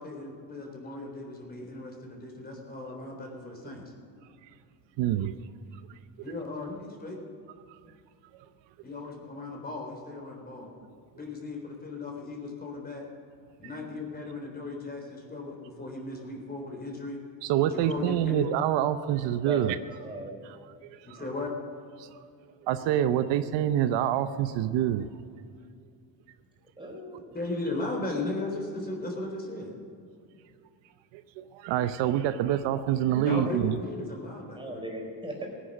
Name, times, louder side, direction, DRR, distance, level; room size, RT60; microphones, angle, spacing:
voice 1, 0.0-3.8 6.2-7.2 8.8-10.7 11.1-13.0 13.6-17.2 17.7-18.4 21.0-21.5 27.3-29.7 33.3-34.8, left 2 dB, 20° left, 1 dB, 3.8 m, -36 dB
voice 2, 5.0-5.3 17.4-19.8 21.1-21.3 22.7-25.1 31.4-33.8, right 11 dB, 80° right, 11 dB, 0.8 m, -26 dB
voice 3, 19.2-19.8 20.0-20.3 26.8-27.2 34.5-35.5, right 1 dB, 10° right, 0 dB, 4.4 m, -37 dB
17.5 x 10.0 x 6.4 m, 2.4 s
cardioid pair, 110°, 43 cm